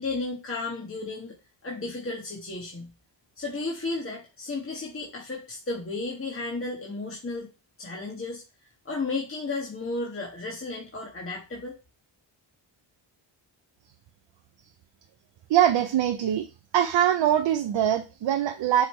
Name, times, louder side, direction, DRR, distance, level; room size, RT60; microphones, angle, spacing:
voice 1, 0.0-1.4 1.6-2.9 3.4-7.5 7.8-8.4 8.8-11.8, left 3 dB, 30° left, -3 dB, 1.7 m, -33 dB
voice 2, 15.5-16.5 16.7-18.9, right 11 dB, 70° right, 7 dB, 0.7 m, -23 dB
7.2 x 3.7 x 4.4 m, 0.30 s
cardioid pair, 90°, 45 cm